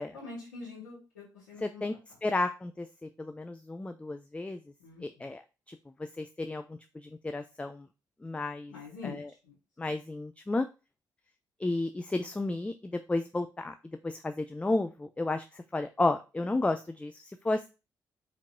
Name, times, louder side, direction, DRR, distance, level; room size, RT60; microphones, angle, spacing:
voice 1, 0.1-1.8 4.8-5.0 8.7-9.9, left 4 dB, 90° left, -8 dB, 1.2 m, -45 dB
voice 2, 1.6-1.9 2.2-4.6 5.0-5.4 5.7-7.9 8.2-8.7 9.0-9.3 9.8-10.7 11.6-13.7 14.0-17.7, left 2 dB, 15° left, 9 dB, 0.4 m, -32 dB
4.4 x 2.8 x 2.6 m, 0.30 s
hypercardioid pair, 40°, 9 cm